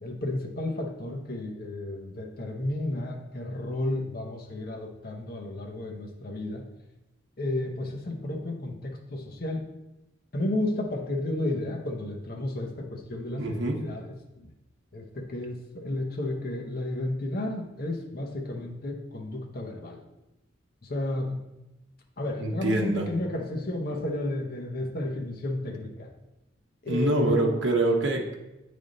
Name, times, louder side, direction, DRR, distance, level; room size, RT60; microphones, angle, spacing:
voice 1, 0.0-6.7 7.4-9.7 10.3-14.5 14.9-20.0 20.8-21.4 22.2-26.1 26.8-27.5, left 1 dB, 50° left, 1 dB, 0.8 m, -32 dB
voice 2, 13.4-13.8 22.4-23.1 26.9-28.3, right 2 dB, 65° right, 0 dB, 0.8 m, -25 dB
8.5 x 3.5 x 3.8 m, 0.95 s
head